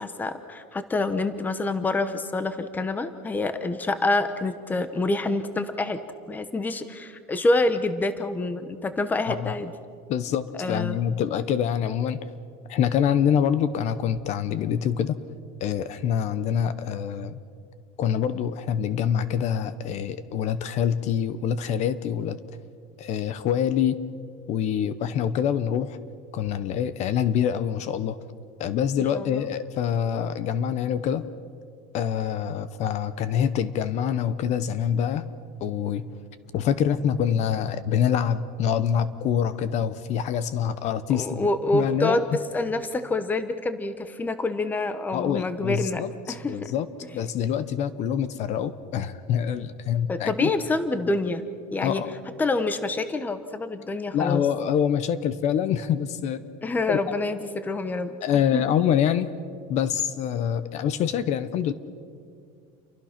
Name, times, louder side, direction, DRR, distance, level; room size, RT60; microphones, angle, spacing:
voice 1, 0.0-6.0 6.3-9.7 10.6-11.0 29.1-29.5 41.1-42.2 42.5-46.7 50.1-51.4 51.7-52.0 52.4-54.4 56.6-58.1 58.5-58.6, left 2 dB, 10° left, 10 dB, 0.9 m, -27 dB
voice 2, 10.1-12.2 12.7-15.1 15.6-17.4 18.0-22.4 23.0-24.0 24.5-26.0 26.3-28.2 28.6-31.3 31.9-35.3 35.6-36.1 36.5-41.5 41.7-42.2 45.1-46.1 46.5-46.9 47.1-50.5 51.8-52.1 54.1-56.5 56.9-57.0 58.2-59.3 59.7-61.7, left 9 dB, 40° left, 14 dB, 0.8 m, -25 dB
29.5 x 23.5 x 5.9 m, 2.3 s
cardioid pair, 175°, 18 cm